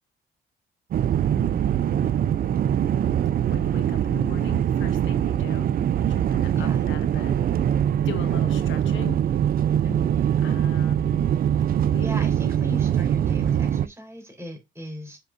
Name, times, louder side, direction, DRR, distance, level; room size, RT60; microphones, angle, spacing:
sound 1, 0.9-13.9, right 10 dB, 50° right, 0.4 m, -23 dB
voice 1, 1.3-2.3 3.5-5.7 6.0-7.5 8.0-9.3 10.4-11.3 11.8-12.1, left 7 dB, 75° left, 1.3 m, -40 dB
voice 2, 9.8-10.2 12.0-15.2, left 1 dB, 15° right, 3.9 m, -37 dB
7.8 x 5.1 x 2.5 m
cardioid pair, 90°, 20 cm